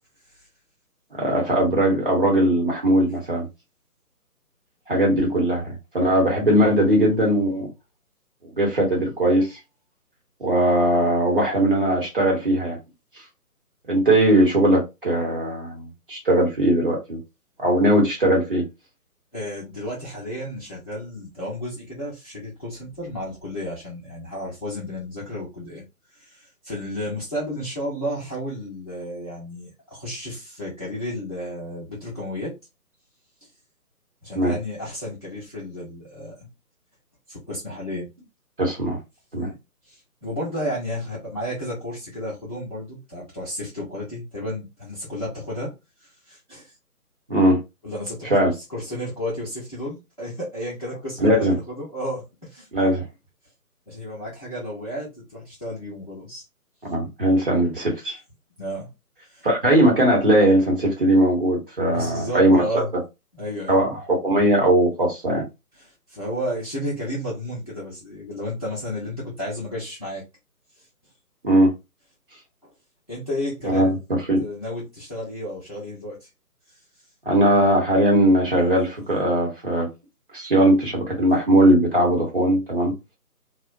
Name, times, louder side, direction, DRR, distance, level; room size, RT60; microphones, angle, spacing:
voice 1, 1.1-3.5 4.9-7.7 8.6-9.6 10.4-12.8 13.9-17.2 17.6-18.6 34.3-34.5 38.6-39.0 39.3-39.5 47.3-47.6 48.2-48.5 51.2-51.5 52.7-53.0 56.9-58.2 59.4-62.8 63.7-65.5 71.4-71.7 73.6-73.9 74.3-74.4 77.3-79.9 80.3-83.0, right 1 dB, 35° right, 0.8 m, -19 dB
voice 2, 19.3-25.8 26.1-32.5 34.2-36.4 37.3-38.1 39.4-39.6 39.8-45.7 46.0-46.7 47.8-52.7 53.9-56.4 58.6-58.9 59.3-59.5 61.9-62.9 63.3-63.8 65.8-70.2 72.6-72.7 73.1-76.3, equal, 25° left, 0.6 m, -32 dB
2.4 x 2.1 x 2.4 m
figure-of-eight pair, 150°, 46 cm